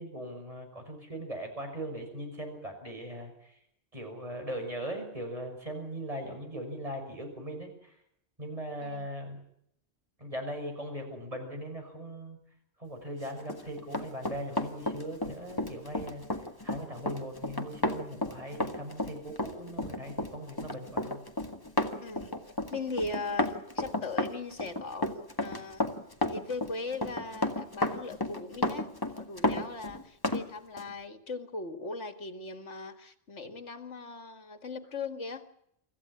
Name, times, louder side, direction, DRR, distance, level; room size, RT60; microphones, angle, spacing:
voice 1, 0.0-3.6 3.9-7.9 8.4-9.4 10.2-12.4 12.8-16.2 16.6-21.2, right 1 dB, 30° right, 4 dB, 6.4 m, -39 dB
Run, 13.4-30.4 30.8-30.9, left 1 dB, 20° left, 1.8 m, -32 dB
voice 2, 22.0-22.3 22.7-25.8 26.3-35.5, left 3 dB, 70° left, 8 dB, 2.3 m, -39 dB
25.5 x 15.0 x 9.9 m, 0.74 s
omnidirectional pair, 1.2 m